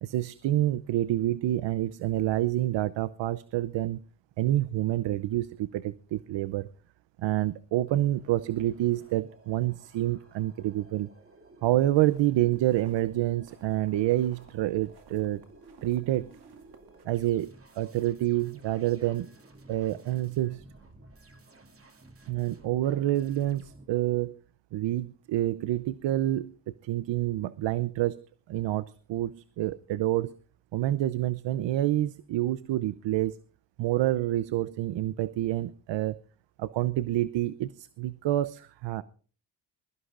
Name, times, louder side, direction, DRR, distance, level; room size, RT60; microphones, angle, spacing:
voice 1, 0.0-4.0 4.4-6.7 7.2-11.1 11.6-15.4 15.8-16.3 17.0-19.3 19.7-20.6 22.3-24.4 24.7-26.5 26.8-28.2 28.5-30.3 30.7-33.4 33.8-36.2 36.6-39.0, right 14 dB, 75° right, 16 dB, 0.7 m, -28 dB
sound 1, 8.1-23.9, right 2 dB, 30° right, 2.6 m, -55 dB
sound 2, 11.8-17.0, right 5 dB, 60° right, 2.5 m, -57 dB
22.0 x 15.0 x 2.5 m, 0.39 s
cardioid pair, 80°, 43 cm